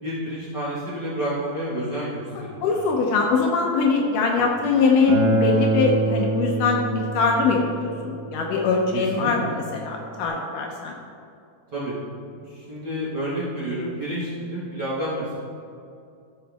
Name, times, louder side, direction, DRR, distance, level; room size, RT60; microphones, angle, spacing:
voice 1, 0.0-2.8 4.3-4.5 8.9-9.3 11.7-12.0 12.5-15.4, right 1 dB, 40° right, -10 dB, 1.6 m, -30 dB
voice 2, 2.6-11.0, left 4 dB, 75° left, 1 dB, 2.1 m, -22 dB
Acoustic guitar, 5.1-10.3, right 2 dB, 5° right, 1.1 m, -26 dB
13.5 x 6.2 x 3.5 m, 2.5 s
omnidirectional pair, 4.2 m